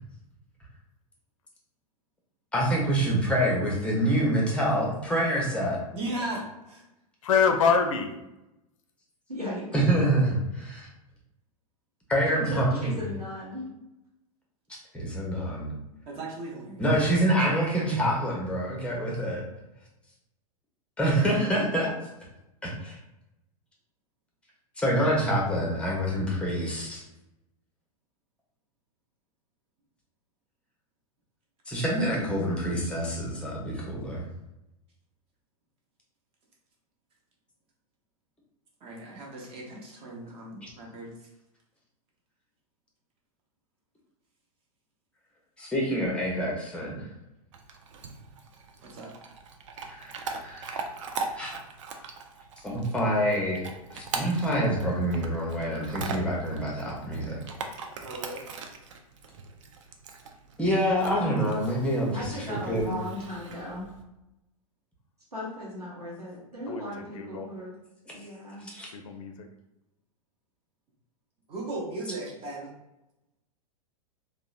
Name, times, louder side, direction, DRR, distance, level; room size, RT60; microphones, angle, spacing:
voice 1, 2.5-5.8 9.7-10.9 12.1-12.9 14.7-15.7 16.8-19.4 21.0-21.9 22.6-23.0 24.8-27.0 31.7-34.2 40.6-40.7 45.6-47.0 49.9-50.9 51.3-51.5 52.6-53.6 53.9-57.4 60.6-62.9 68.6-68.9, right 1 dB, 5° left, -3 dB, 0.6 m, -26 dB
voice 2, 5.9-6.8 16.1-16.9 38.8-41.1 48.9-49.1 58.0-58.4 71.5-72.7, right 2 dB, 30° right, -2 dB, 0.7 m, -37 dB
voice 3, 7.2-8.2 66.7-67.5 68.9-69.5, left 6 dB, 60° left, 5 dB, 0.4 m, -25 dB
voice 4, 9.3-9.8 12.3-13.7 62.1-63.9 65.3-67.8 68.1-68.7, equal, 90° right, -5 dB, 0.7 m, -37 dB
Chewing mastication / Dog, 47.5-64.0, right 4 dB, 55° right, 0.4 m, -40 dB
2.8 x 2.0 x 2.4 m, 0.92 s
figure-of-eight pair, 95°, 19 cm